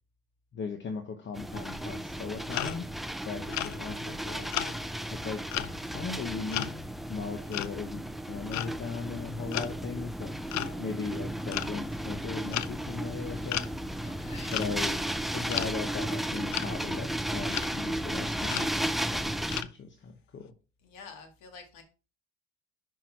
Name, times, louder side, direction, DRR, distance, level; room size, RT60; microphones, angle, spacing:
voice 1, 0.5-2.9 3.2-4.5 5.1-6.7 7.1-8.0 8.3-10.3 10.8-13.6 14.5-15.0 15.3-20.5, left 5 dB, 35° left, 6 dB, 1.0 m, -38 dB
sound 1, 1.3-19.6, right 1 dB, ahead, 0.3 m, -34 dB
sound 2, 2.5-2.9 3.5-4.2 4.5-4.8 5.5-6.0 6.5-6.9 7.5-7.8 8.5-8.9 9.5-9.8 10.5-10.8 11.5-11.7 12.5-12.8 13.5-13.7 14.5-14.7 15.5-15.8 16.5-16.7 17.5-17.7 18.5-18.7 19.5-19.7, left 13 dB, 55° left, 0.6 m, -34 dB
voice 2, 13.2-13.7 14.0-14.5 20.8-21.8, left 5 dB, 75° left, 5 dB, 1.9 m, -49 dB
5.8 x 4.6 x 4.5 m, 0.33 s
supercardioid pair, 90°, 34 cm